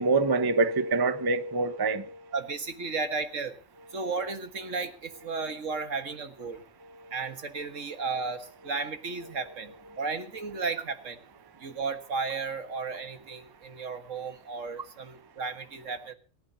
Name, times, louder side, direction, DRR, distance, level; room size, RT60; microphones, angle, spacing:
voice 1, 0.0-2.2, right 3 dB, 20° right, 0.8 m, -25 dB
voice 2, 2.3-3.5 3.9-6.6 7.1-11.2 11.6-16.1, right 4 dB, 70° right, 1.9 m, -34 dB
28.0 x 11.5 x 2.8 m
omnidirectional pair, 1.4 m